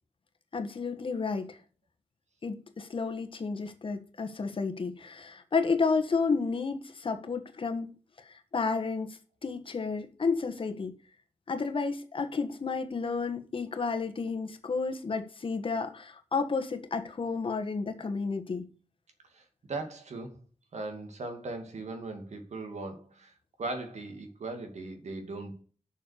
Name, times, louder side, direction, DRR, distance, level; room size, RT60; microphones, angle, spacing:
voice 1, 0.5-1.6 2.4-7.9 8.2-10.9 11.5-18.7, left 4 dB, 50° left, 1.4 m, -31 dB
voice 2, 19.3-20.4 20.7-23.3 23.6-25.6, right 2 dB, 75° right, 2.4 m, -39 dB
7.3 x 6.5 x 6.6 m
wide cardioid pair, 160°, 12 cm